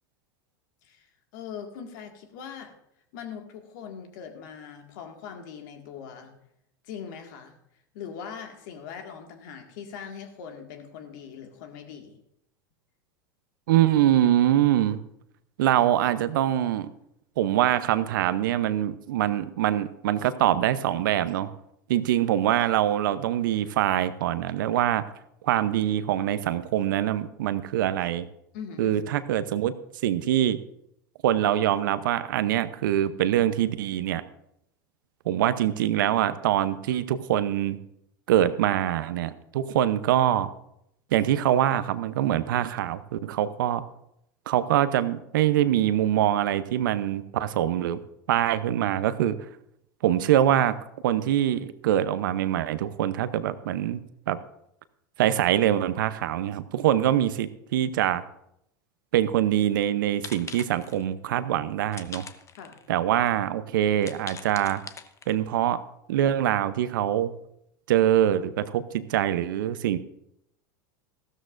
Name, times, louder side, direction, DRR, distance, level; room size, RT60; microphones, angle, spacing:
voice 1, 0.8-2.7 3.1-6.3 6.8-7.6 7.9-12.2 28.5-29.0 62.6-62.8, left 7 dB, 65° left, 4 dB, 1.9 m, -41 dB
voice 2, 13.7-15.0 15.6-16.9 17.4-21.5 21.9-25.0 25.4-28.3 28.8-29.7 30.0-30.6 31.2-34.2 35.3-37.8 38.3-40.5 41.1-43.8 44.5-48.0 48.3-49.3 50.0-50.7 51.0-54.0 54.3-54.4 55.2-58.2 59.1-62.2 62.9-64.8 65.3-65.8 66.1-67.3 67.9-70.0, right 12 dB, 75° right, 14 dB, 0.7 m, -24 dB
sound 1, 59.7-59.9 60.2-61.1 61.9-62.9 63.3-63.4 64.0-65.5, left 6 dB, 25° left, 0.8 m, -42 dB
14.5 x 13.0 x 2.6 m, 0.77 s
hypercardioid pair, 95°, 11 cm